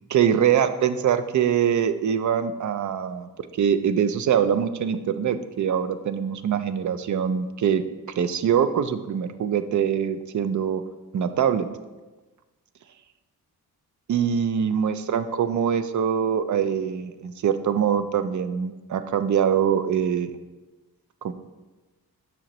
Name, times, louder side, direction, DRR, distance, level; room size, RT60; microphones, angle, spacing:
voice 1, 0.1-7.8 8.2-10.8 11.1-11.7 14.1-20.3 21.2-21.3, right 8 dB, 50° right, 11 dB, 0.5 m, -23 dB
8.8 x 6.2 x 3.0 m, 1.2 s
wide cardioid pair, 110°, 38 cm